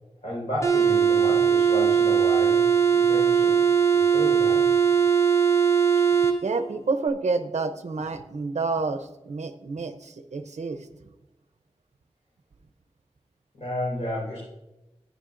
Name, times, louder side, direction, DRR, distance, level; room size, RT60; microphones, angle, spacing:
voice 1, 0.2-3.6 3.9-4.6 13.5-14.4, left 1 dB, 70° left, -6 dB, 4.3 m, -32 dB
sound 1, 0.6-6.4, right 7 dB, 25° left, 1.5 m, -20 dB
voice 2, 6.4-10.9, right 4 dB, 85° right, 8 dB, 0.6 m, -29 dB
14.5 x 9.8 x 2.5 m, 0.97 s
wide cardioid pair, 65°, 12 cm